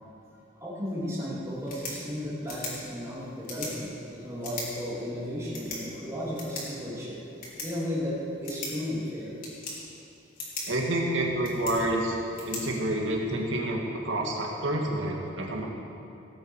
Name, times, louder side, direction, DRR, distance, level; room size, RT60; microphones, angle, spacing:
voice 1, 0.6-7.2 7.6-9.3, equal, 15° right, -6 dB, 3.0 m, -34 dB
sound 1, 1.5-13.5, left 2 dB, 50° left, 3.5 m, -42 dB
voice 2, 10.7-12.2 12.5-15.7, right 1 dB, 75° right, 0 dB, 2.0 m, -28 dB
18.5 x 8.6 x 4.8 m, 2.7 s
head